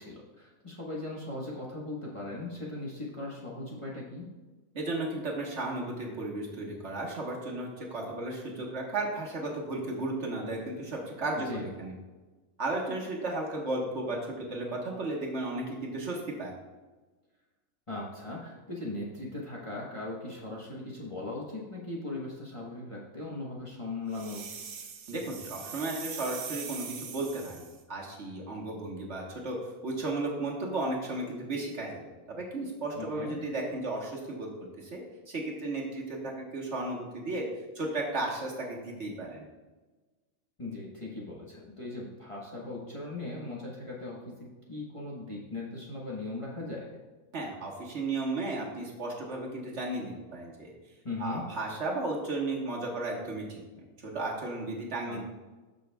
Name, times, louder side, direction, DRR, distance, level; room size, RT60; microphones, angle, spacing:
voice 1, 0.0-4.3 11.3-11.7 17.9-24.6 32.9-33.4 40.6-44.3 44.7-47.0 51.0-51.5 55.1-55.2, left 2 dB, 25° left, -4 dB, 1.1 m, -39 dB
voice 2, 4.7-11.9 12.6-16.5 25.1-29.6 29.8-34.5 34.8-35.0 35.3-37.4 37.7-39.5 47.3-50.7 51.2-53.6 54.0-55.2, right 2 dB, 55° right, -2 dB, 1.6 m, -34 dB
sound 1, 24.1-27.8, right 6 dB, 75° right, 1.2 m, -42 dB
13.0 x 5.3 x 2.3 m, 1.2 s
omnidirectional pair, 1.4 m